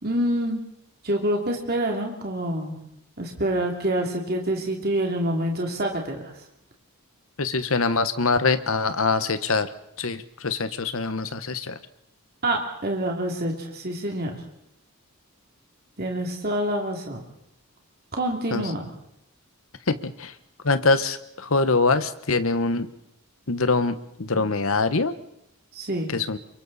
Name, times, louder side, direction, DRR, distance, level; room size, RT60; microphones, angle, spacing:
voice 1, 0.0-0.6 1.0-2.8 3.2-6.2 12.4-14.3 16.0-17.2 18.1-18.9 24.3-24.4 25.7-26.1, right 1 dB, 45° right, 1 dB, 3.0 m, -26 dB
voice 2, 7.4-9.7 10.0-11.8 18.5-18.6 19.9-20.3 20.6-22.9 23.5-25.1 26.1-26.4, left 3 dB, 70° left, 11 dB, 1.2 m, -24 dB
28.0 x 24.5 x 4.2 m, 0.79 s
head